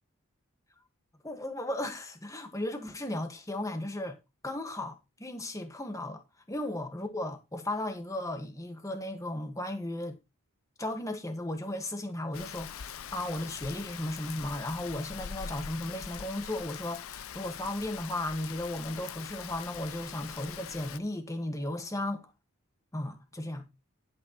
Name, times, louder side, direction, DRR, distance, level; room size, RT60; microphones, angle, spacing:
voice 1, 1.2-4.2 4.4-6.2 6.5-10.2 10.8-22.3 22.9-23.7, left 1 dB, 15° left, 1.6 m, -35 dB
Rain, 12.3-21.0, left 8 dB, 75° left, 0.6 m, -43 dB
11.5 x 10.5 x 3.1 m
head